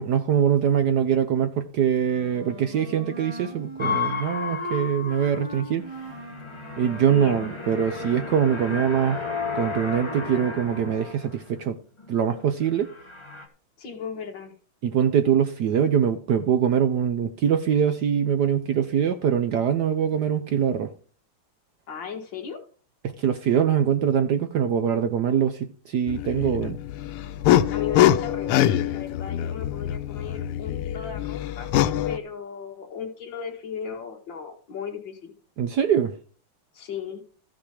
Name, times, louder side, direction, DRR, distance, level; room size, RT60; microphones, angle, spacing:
voice 1, 0.0-5.8 6.8-9.2 9.5-11.8 12.1-12.9 14.8-20.9 23.0-26.8 35.6-36.1, right 8 dB, 65° right, 1.0 m, -23 dB
Wind instrument woodwind instrument, 2.0-7.6, right 1 dB, 15° right, 2.5 m, -40 dB
sound 1, 3.8-11.6 12.0-12.4 12.8-13.5, left 5 dB, 20° left, 1.0 m, -33 dB
voice 2, 7.1-7.5 13.8-14.5 21.9-22.6 27.7-35.3 36.7-37.2, left 7 dB, 60° left, 2.3 m, -36 dB
sound 2, 26.1-32.2, left 12 dB, 90° left, 1.6 m, -24 dB
14.0 x 6.1 x 4.9 m
omnidirectional pair, 2.4 m